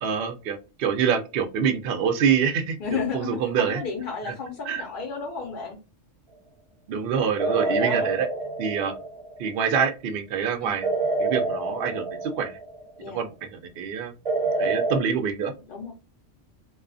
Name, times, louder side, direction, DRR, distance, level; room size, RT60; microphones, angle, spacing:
voice 1, 0.0-3.8 4.7-4.8 6.9-8.3 8.6-8.9 9.4-10.9 11.2-12.6 13.1-13.3 13.8-14.1 14.6-15.5, right 7 dB, 60° right, 7 dB, 0.6 m, -26 dB
voice 2, 2.8-5.8 7.5-8.1 10.6-10.9 13.0-13.3 15.7-15.9, left 5 dB, 55° left, 1 dB, 0.6 m, -33 dB
sound 1, 7.4-9.4 10.8-12.9 14.2-15.0, right 3 dB, 35° right, 0.8 m, -27 dB
2.3 x 2.3 x 2.4 m, 0.30 s
omnidirectional pair, 1.3 m